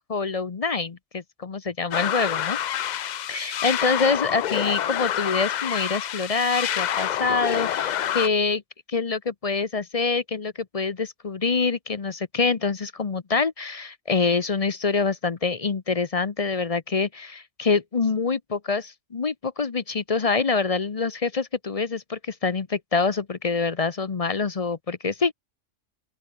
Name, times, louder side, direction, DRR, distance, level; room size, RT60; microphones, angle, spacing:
voice 1, 0.0-2.6 3.3-8.6 8.9-25.3, left 4 dB, 35° left, 0.7 m, -25 dB
sound 1, 1.9-8.3, left 10 dB, 85° left, 0.4 m, -27 dB
open air
omnidirectional pair, 1.3 m